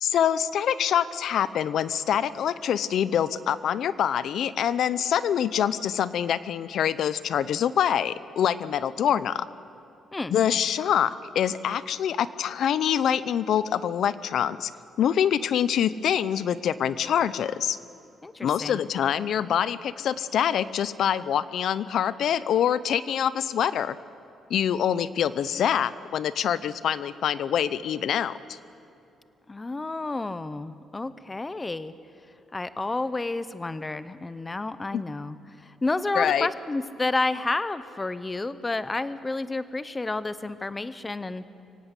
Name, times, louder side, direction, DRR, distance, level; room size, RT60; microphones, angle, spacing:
voice 1, 0.0-9.5 10.3-14.7 15.0-17.8 18.4-24.0 24.5-28.6 34.9-35.0 36.1-36.5, left 9 dB, 65° left, 16 dB, 0.7 m, -25 dB
voice 2, 18.2-18.8 29.5-31.9 32.5-35.4 35.6-41.4, left 2 dB, 15° left, 14 dB, 0.7 m, -30 dB
24.0 x 17.5 x 8.2 m, 2.7 s
cardioid pair, 150°, 0 cm